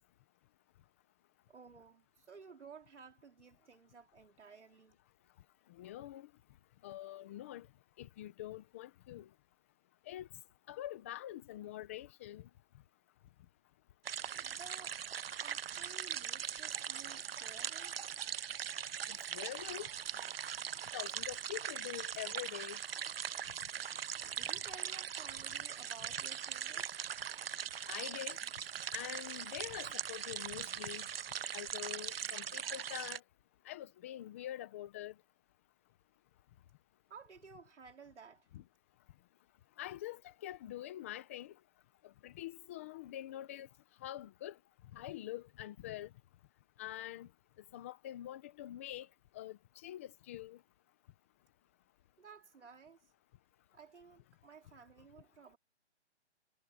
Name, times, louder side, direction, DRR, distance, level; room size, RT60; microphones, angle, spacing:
voice 1, 1.5-5.0 14.3-15.0 15.4-18.0 24.2-27.0 37.1-38.5 52.2-53.1 53.7-55.6, right 5 dB, 85° right, 4.2 m, -56 dB
voice 2, 5.7-6.3 6.8-7.7 8.0-9.3 10.1-10.3 10.7-12.5 19.1-19.9 20.9-22.8 27.9-28.4 28.9-31.1 31.5-33.2 33.6-35.1 38.5-38.6 39.8-41.5 42.0-43.7 44.0-44.6 44.9-46.1 46.8-47.3 47.7-49.1 49.3-50.6, left 13 dB, 10° left, 0.7 m, -45 dB
sound 1, 14.0-33.2, right 8 dB, 55° right, 0.8 m, -41 dB
hypercardioid pair, 165°, 34 cm